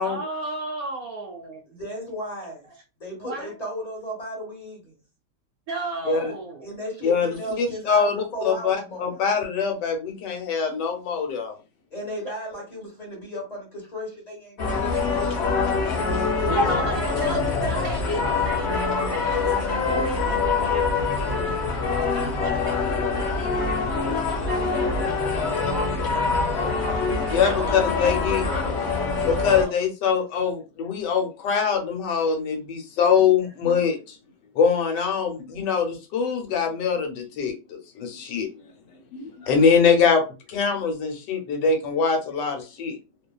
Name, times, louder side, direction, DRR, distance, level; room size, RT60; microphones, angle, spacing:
voice 1, 0.0-1.6 3.2-3.5 5.7-6.8 16.5-21.3 21.7-26.4 27.3-28.2 29.6-29.7, right 3 dB, 70° right, 1.0 m, -36 dB
voice 2, 1.7-2.7 3.0-5.0 6.6-9.2 11.9-15.5 16.3-17.6 28.5-28.8, equal, 30° left, 0.9 m, -35 dB
voice 3, 7.0-11.5 15.8-16.0 27.3-28.4 29.2-34.0 34.5-38.5 39.1-43.0, left 6 dB, 80° left, 1.3 m, -23 dB
sound 1, 14.6-29.7, left 4 dB, 55° left, 0.8 m, -24 dB
2.7 x 2.3 x 2.2 m
omnidirectional pair, 1.9 m